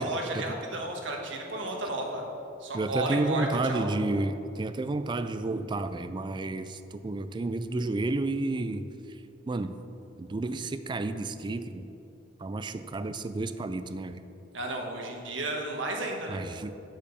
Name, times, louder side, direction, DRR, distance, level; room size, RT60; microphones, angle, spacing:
voice 1, 0.0-2.2 2.6-3.9 14.5-16.4, right 2 dB, 90° right, 1 dB, 1.5 m, -33 dB
voice 2, 2.7-8.9 9.5-9.7 10.2-11.9 12.4-14.2 16.3-16.7, right 2 dB, 25° right, 11 dB, 0.4 m, -31 dB
7.5 x 6.9 x 6.8 m, 2.8 s
head